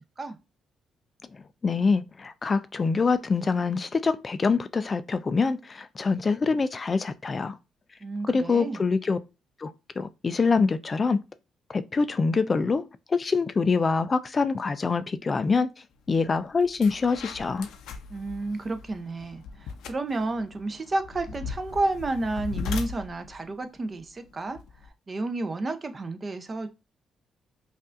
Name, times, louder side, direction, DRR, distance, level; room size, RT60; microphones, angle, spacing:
voice 1, 1.6-7.5 8.3-9.2 9.6-11.2 11.7-12.8 13.1-15.7 16.1-17.7, left 4 dB, 35° left, 0.3 m, -25 dB
voice 2, 8.0-8.8 18.1-24.6 25.1-26.7, right 2 dB, 30° right, 0.6 m, -31 dB
opening and closing window, 16.1-16.2 16.6-24.9, left 5 dB, 80° left, 0.5 m, -39 dB
5.3 x 2.4 x 2.5 m
cardioid pair, 90°, 0 cm